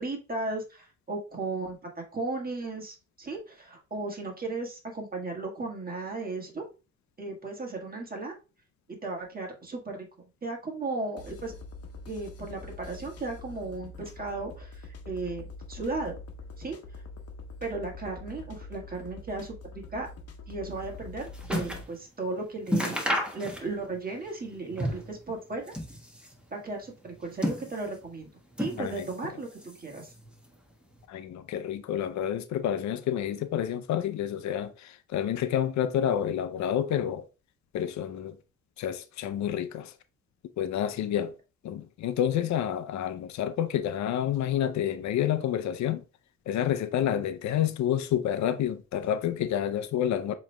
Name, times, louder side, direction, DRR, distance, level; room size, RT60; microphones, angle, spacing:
voice 1, 0.0-6.6 7.2-8.3 8.9-10.1 10.4-11.5 12.1-16.2 16.6-16.8 17.6-20.1 20.5-23.0 23.3-25.7 26.5-28.3 28.6-30.1, right 3 dB, 30° right, 1.6 m, -35 dB
sound 1, 11.2-21.8, left 3 dB, 55° left, 1.0 m, -44 dB
sound 2, 20.8-21.9 22.3-22.4 22.6-24.0 24.2-25.2 25.5-26.4 27.0-28.1 28.5-29.2 29.5-30.3 31.0-31.1, equal, 5° right, 1.2 m, -32 dB
voice 2, 31.1-37.3 37.7-38.4 38.8-39.9 40.6-41.3 41.6-46.0 46.5-50.3, left 10 dB, 70° left, 0.5 m, -29 dB
7.1 x 3.1 x 2.2 m
cardioid pair, 90°, 30 cm